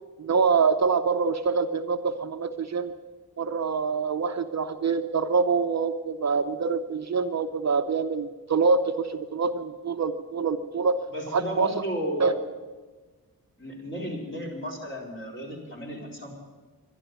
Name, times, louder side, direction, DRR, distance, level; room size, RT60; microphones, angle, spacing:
voice 1, 0.2-2.9 3.4-11.0 11.3-11.7 12.2-12.3, right 5 dB, 50° right, 8 dB, 0.7 m, -25 dB
voice 2, 11.1-12.4 13.6-16.3, equal, 30° left, -3 dB, 4.6 m, -33 dB
12.0 x 11.5 x 9.2 m, 1.3 s
wide cardioid pair, 110°, 36 cm